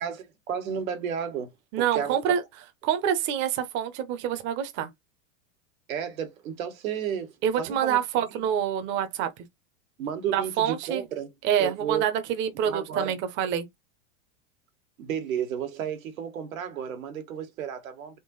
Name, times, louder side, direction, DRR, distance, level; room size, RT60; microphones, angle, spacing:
voice 1, 0.0-1.5 1.8-2.3 5.9-7.3 7.6-8.4 10.0-11.3 11.6-12.0 12.6-13.1 15.0-18.2, right 8 dB, 85° right, 1.6 m, -32 dB
voice 2, 1.7-2.4 2.8-4.9 7.4-9.3 10.3-11.0 11.4-13.7, right 9 dB, 30° right, 0.7 m, -26 dB
3.8 x 2.9 x 3.8 m
supercardioid pair, 145°, 40 cm